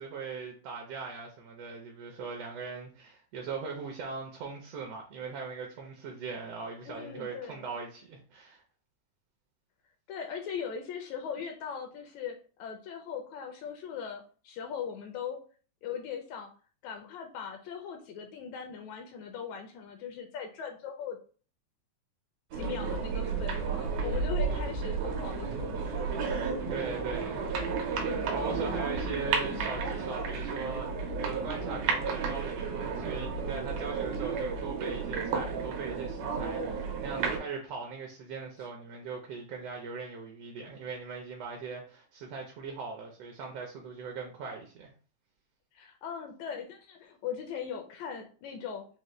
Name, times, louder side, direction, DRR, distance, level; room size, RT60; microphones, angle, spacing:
voice 1, 0.0-8.6 26.7-27.4 28.3-30.9 31.2-44.9, right 5 dB, 75° right, 1.5 m, -40 dB
voice 2, 6.9-7.7 10.1-15.4 15.8-16.5 16.8-21.2 22.5-26.1 45.7-48.9, left 7 dB, 80° left, 1.7 m, -39 dB
sound 1, 22.5-37.4, right 5 dB, 90° right, 2.2 m, -32 dB
5.3 x 2.1 x 3.1 m
omnidirectional pair, 3.4 m